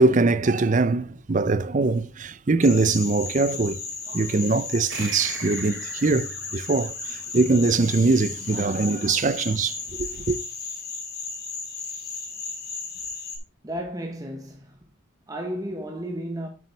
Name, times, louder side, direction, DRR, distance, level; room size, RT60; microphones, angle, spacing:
voice 1, 0.0-3.8 4.1-10.4, right 3 dB, 35° right, 0.5 m, -22 dB
sound 1, 2.6-13.4, left 4 dB, 45° left, 3.1 m, -35 dB
sound 2, 4.9-7.9, right 4 dB, 55° right, 3.3 m, -39 dB
voice 2, 13.6-14.9 15.3-16.5, equal, 15° right, 1.0 m, -33 dB
8.4 x 8.2 x 3.3 m
head